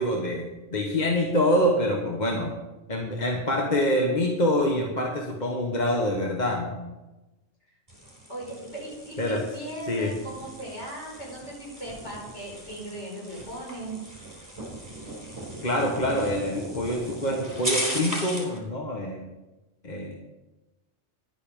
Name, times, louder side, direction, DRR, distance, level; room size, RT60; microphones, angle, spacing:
voice 1, 0.0-2.5 2.9-6.8 9.2-9.4 9.9-10.1 15.6-19.2 19.8-20.1, left 1 dB, 35° left, 0 dB, 1.4 m, -25 dB
sound 1, 7.9-18.6, right 1 dB, 20° right, 4.1 m, -37 dB
voice 2, 8.3-14.0, right 1 dB, 60° left, -3 dB, 5.2 m, -38 dB
11.0 x 9.6 x 5.4 m, 1.1 s
omnidirectional pair, 1.3 m